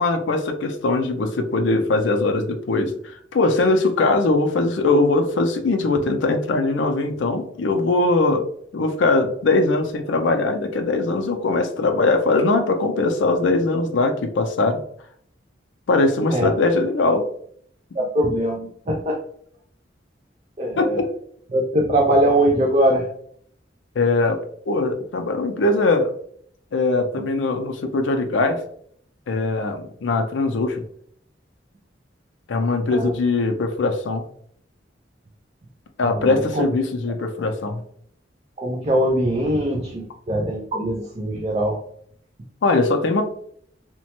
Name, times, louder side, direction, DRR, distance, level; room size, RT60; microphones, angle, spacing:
voice 1, 0.0-8.5 8.7-14.8 15.9-17.3 20.8-21.1 24.0-24.4 24.7-26.1 26.7-28.6 29.3-30.8 32.5-34.2 36.0-37.8 42.6-43.2, left 3 dB, 85° left, 6 dB, 0.4 m, -21 dB
voice 2, 17.9-19.2 20.6-21.0 21.5-23.1 32.9-33.1 36.0-36.6 38.6-41.8, right 1 dB, 35° right, -1 dB, 0.4 m, -21 dB
2.9 x 2.1 x 2.9 m, 0.62 s
head